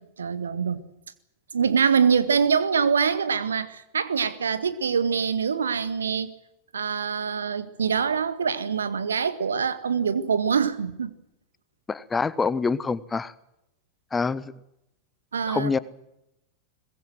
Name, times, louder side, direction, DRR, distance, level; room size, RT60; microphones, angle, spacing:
voice 1, 0.2-0.8 1.5-6.3 6.7-11.1 15.3-15.8, right 6 dB, 70° right, 1.7 m, -24 dB
voice 2, 11.9-13.3 14.1-14.5 15.5-15.8, left 4 dB, 15° left, 1.1 m, -26 dB
22.5 x 21.0 x 7.7 m
figure-of-eight pair, 90°, 0 cm